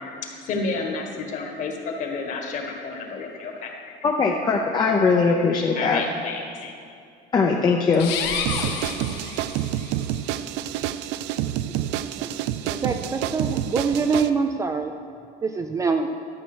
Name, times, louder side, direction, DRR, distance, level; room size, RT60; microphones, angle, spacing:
voice 1, 0.0-3.7 4.9-5.0 5.4-6.7, left 4 dB, 45° left, 2 dB, 1.6 m, -31 dB
voice 2, 4.0-6.0 7.3-8.1, left 4 dB, 25° left, 0 dB, 0.6 m, -20 dB
sound 1, 7.9-9.9, left 6 dB, 75° left, 1.4 m, -30 dB
sound 2, 8.4-14.3, right 12 dB, 85° right, 0.5 m, -28 dB
voice 3, 12.6-14.9 15.4-16.1, right 5 dB, 20° right, 6 dB, 0.4 m, -24 dB
12.5 x 7.2 x 6.2 m, 2.4 s
cardioid pair, 165°, 18 cm